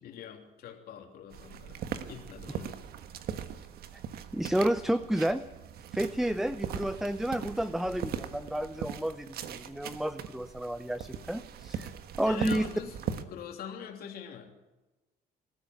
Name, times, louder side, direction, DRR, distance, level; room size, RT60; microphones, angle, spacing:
voice 1, 0.0-1.8 2.1-2.8 12.2-14.5, left 8 dB, 65° left, 2 dB, 3.1 m, -44 dB
sound 1, 1.3-13.2, right 8 dB, 65° right, 1.5 m, -40 dB
voice 2, 4.3-5.4 5.9-11.9 12.2-12.7, right 1 dB, ahead, 12 dB, 0.7 m, -30 dB
22.0 x 13.0 x 9.4 m, 1.1 s
cardioid pair, 110°, 17 cm